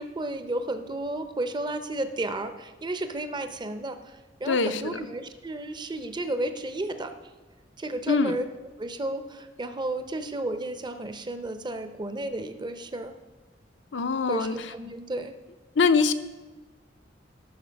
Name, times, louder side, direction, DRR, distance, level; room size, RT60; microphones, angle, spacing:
voice 1, 0.0-7.1 7.8-8.5 8.8-13.1 14.3-15.3, right 1 dB, 25° right, 9 dB, 0.6 m, -33 dB
voice 2, 4.5-5.0 8.1-8.3 13.9-14.6 15.8-16.1, left 4 dB, 75° left, 10 dB, 0.6 m, -23 dB
13.0 x 6.2 x 5.2 m, 1.3 s
head